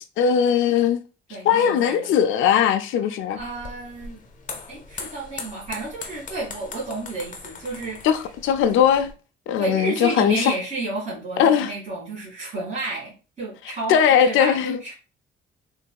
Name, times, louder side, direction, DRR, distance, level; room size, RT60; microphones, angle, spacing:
voice 1, 0.2-1.0 1.4-3.4 8.0-9.1 9.5-10.5 11.4-11.7 13.9-14.8, left 8 dB, 80° left, 0.4 m, -19 dB
voice 2, 1.3-2.2 3.3-4.2 4.7-8.1 9.6-14.9, right 3 dB, 35° right, 1.8 m, -31 dB
sound 1, 3.4-9.1, left 4 dB, 40° left, 0.7 m, -40 dB
3.8 x 2.6 x 2.3 m
cardioid pair, 90°, 20 cm